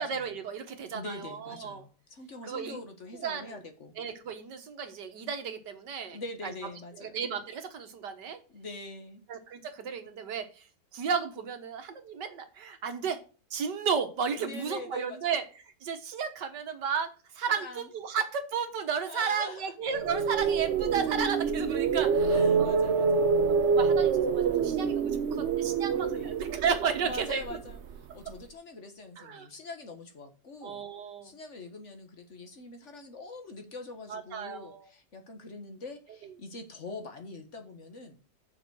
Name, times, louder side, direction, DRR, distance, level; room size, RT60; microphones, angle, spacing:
voice 1, 0.0-1.8 2.4-2.8 3.2-3.6 4.0-6.5 7.0-8.4 9.3-10.6 10.9-13.2 13.5-15.4 15.8-17.1 17.3-22.7 23.6-27.6 29.2-29.5 30.6-31.3 34.1-34.9, right 6 dB, 90° right, 7 dB, 1.9 m, -33 dB
voice 2, 0.9-3.9 6.1-7.2 8.5-9.2 14.4-15.3 17.6-17.9 19.0-19.7 22.3-23.3 25.9-26.3 27.0-27.8 28.1-30.8 31.2-38.2, left 3 dB, 45° left, 6 dB, 1.6 m, -44 dB
sound 1, 19.9-28.0, right 5 dB, 55° right, 0.8 m, -26 dB
7.1 x 6.0 x 6.2 m, 0.36 s
omnidirectional pair, 1.8 m